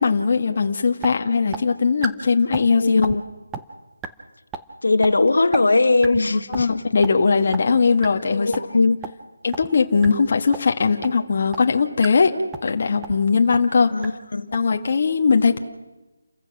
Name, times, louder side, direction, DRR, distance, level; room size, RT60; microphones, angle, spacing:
voice 1, 0.0-3.1 6.5-8.6 9.4-12.3 12.6-14.1 14.5-15.6, left 5 dB, 40° left, 4 dB, 1.6 m, -19 dB
sound 1, 0.5-0.6 1.0-1.1 1.5-1.6 2.0-2.1 2.5-2.7 3.0-3.2 3.5-3.6 4.0-4.1 4.5-4.6 5.0-5.1 5.5-5.6 6.0-6.2 6.5-6.6 7.0-7.1 7.5-7.6 8.0-8.1 8.5-8.6 9.0-9.1 9.5-9.7 10.0-10.1 10.5-10.6 11.0-11.1 11.5-11.6 12.0-12.1 12.5-12.7 13.0-13.2 13.5-13.6 14.0-14.1 14.5-14.6, right 7 dB, 5° right, 0.8 m, -30 dB
voice 2, 2.8-3.2 4.8-6.8 8.3-9.0 13.9-14.5, left 3 dB, 75° left, 9 dB, 1.6 m, -19 dB
30.0 x 15.0 x 6.0 m, 1.1 s
figure-of-eight pair, 175°, 0 cm